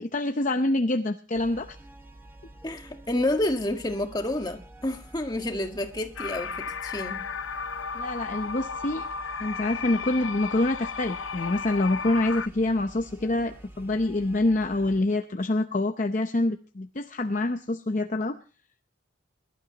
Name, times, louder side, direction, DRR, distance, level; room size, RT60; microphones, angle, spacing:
voice 1, 0.0-1.8 7.9-9.0 9.4-18.4, left 2 dB, 40° left, 0.7 m, -26 dB
sound 1, 1.3-15.0, right 1 dB, 10° right, 1.3 m, -49 dB
voice 2, 2.6-7.3, left 1 dB, 20° left, 1.6 m, -29 dB
sound 2, 6.2-12.5, left 5 dB, 85° left, 0.6 m, -34 dB
23.0 x 12.0 x 2.9 m
head